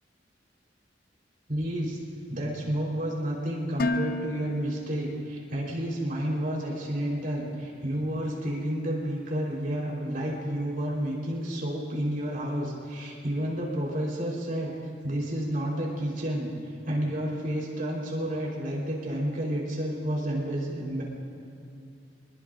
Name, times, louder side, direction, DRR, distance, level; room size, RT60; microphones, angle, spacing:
voice 1, 1.5-2.0 2.3-14.7 15.0-21.0, right 1 dB, 50° right, -4 dB, 3.9 m, -30 dB
Dishes pots and pans, 3.8-5.9, left 2 dB, 55° left, 0.6 m, -33 dB
25.5 x 21.5 x 2.6 m, 2.5 s
head